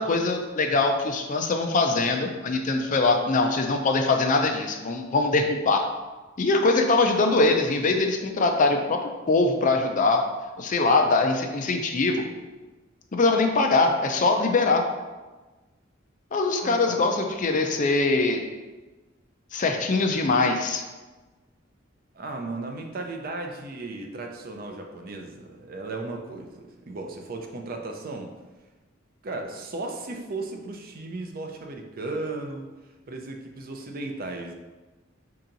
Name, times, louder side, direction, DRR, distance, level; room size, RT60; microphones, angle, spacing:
voice 1, 0.0-5.8 6.4-9.0 9.3-10.2 10.6-12.2 13.1-14.9 16.3-18.4 19.5-20.8, left 3 dB, 40° left, 4 dB, 0.5 m, -22 dB
voice 2, 16.6-17.0 22.1-28.3 29.2-32.7 33.1-34.5, right 2 dB, 50° right, 3 dB, 0.5 m, -35 dB
4.6 x 2.9 x 3.8 m, 1.2 s
head